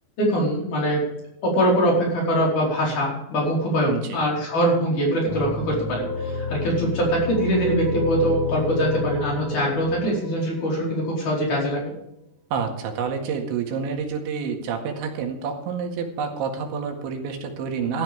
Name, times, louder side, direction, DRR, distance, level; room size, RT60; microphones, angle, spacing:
voice 1, 0.2-1.0 1.4-11.9, right 1 dB, 40° left, -2 dB, 5.7 m, -23 dB
voice 2, 3.9-4.2 12.5-18.0, right 6 dB, 75° right, 3 dB, 4.1 m, -28 dB
sound 1, 5.3-11.4, left 3 dB, 15° right, 4.1 m, -30 dB
15.5 x 13.0 x 3.5 m, 0.80 s
omnidirectional pair, 5.4 m